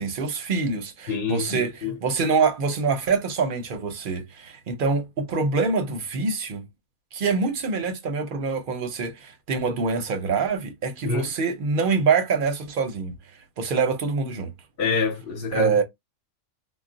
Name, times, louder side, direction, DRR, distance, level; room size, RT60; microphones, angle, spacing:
voice 1, 0.0-1.7 2.0-6.7 7.1-13.1 13.6-14.5 15.5-15.8, right 4 dB, 50° right, 0.7 m, -25 dB
voice 2, 1.1-2.0 11.0-11.3 14.8-15.8, left 4 dB, 50° left, 0.9 m, -27 dB
2.3 x 2.1 x 3.8 m
omnidirectional pair, 1.4 m